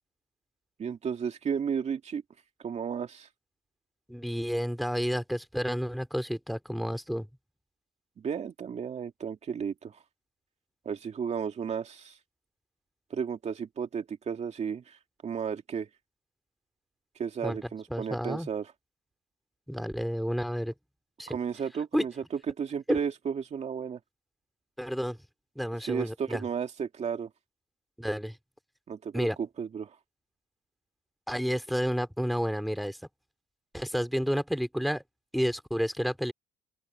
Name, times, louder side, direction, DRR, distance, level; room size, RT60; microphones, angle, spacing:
voice 1, 0.8-2.2 2.6-3.3 8.2-10.0 10.9-12.2 13.1-15.0 15.2-15.9 17.2-18.7 21.3-22.1 22.5-24.0 25.8-27.3 28.9-29.9, right 7 dB, 40° right, 2.4 m, -33 dB
voice 2, 4.1-7.3 17.4-17.6 17.9-18.5 19.7-20.7 21.2-21.4 21.9-22.1 22.9-23.0 24.8-25.2 25.5-26.4 28.0-28.4 29.1-29.4 31.3-33.0 33.7-35.0 35.3-36.3, equal, ahead, 2.9 m, -30 dB
open air
cardioid pair, 110°, 17 cm